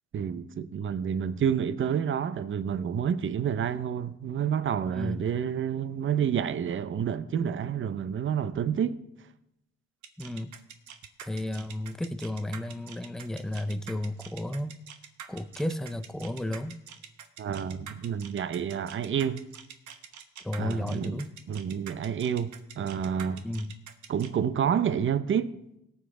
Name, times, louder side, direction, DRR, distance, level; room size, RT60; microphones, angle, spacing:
voice 1, 0.1-9.0 17.4-19.4 20.6-21.2 21.5-22.5 22.8-23.4 24.1-25.5, right 8 dB, 40° right, 0.6 m, -29 dB
voice 2, 4.9-5.2 10.2-10.6 11.2-14.8 15.3-16.8 20.4-21.3 23.4-23.8, left 1 dB, ahead, 0.5 m, -33 dB
sound 1, 10.0-24.3, right 8 dB, 70° right, 1.0 m, -45 dB
18.0 x 7.2 x 3.8 m
cardioid pair, 90°, 30 cm